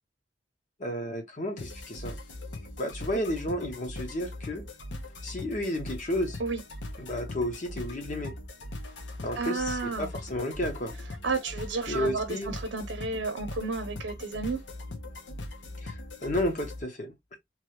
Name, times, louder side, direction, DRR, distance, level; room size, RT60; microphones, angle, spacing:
voice 1, 0.8-2.2 2.8-4.7 5.2-6.4 7.0-8.3 9.2-11.0 11.9-12.5 15.8-15.9 16.2-17.1, left 1 dB, 45° left, 0.8 m, -32 dB
sound 1, 1.6-16.8, left 1 dB, 75° left, 0.8 m, -40 dB
voice 2, 9.4-10.1 11.2-14.6, right 3 dB, 75° right, 0.7 m, -32 dB
3.0 x 2.3 x 3.0 m
head